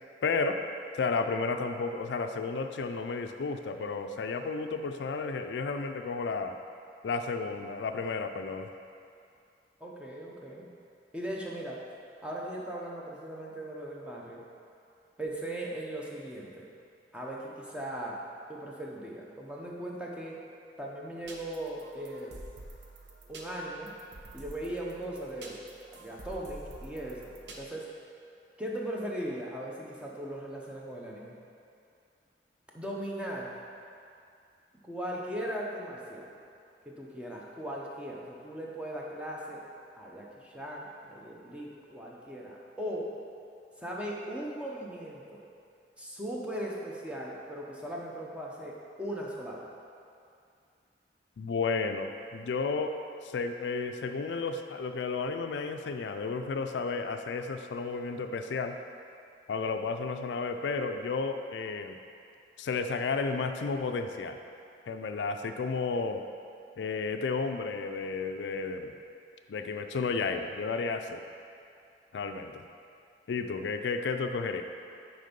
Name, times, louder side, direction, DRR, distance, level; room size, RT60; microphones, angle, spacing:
voice 1, 0.2-0.6 1.0-6.6 7.0-8.7 51.4-52.9 53.2-58.8 59.5-62.0 62.6-64.4 64.9-66.2 66.8-68.9 69.5-71.2 72.1-72.7 73.3-74.6, left 4 dB, 80° left, 7 dB, 0.4 m, -32 dB
voice 2, 9.8-10.7 11.1-11.8 12.2-14.4 15.2-16.7 17.1-18.2 18.5-20.4 20.8-22.4 23.3-23.9 24.3-27.9 28.6-31.4 32.7-33.5 34.8-36.3 36.9-39.6 40.0-43.1 43.8-45.2 46.0-49.7, right 1 dB, 5° right, -4 dB, 0.8 m, -38 dB
sound 1, 21.2-27.6, right 1 dB, 75° right, 0.8 m, -48 dB
6.5 x 4.5 x 5.2 m, 2.5 s
head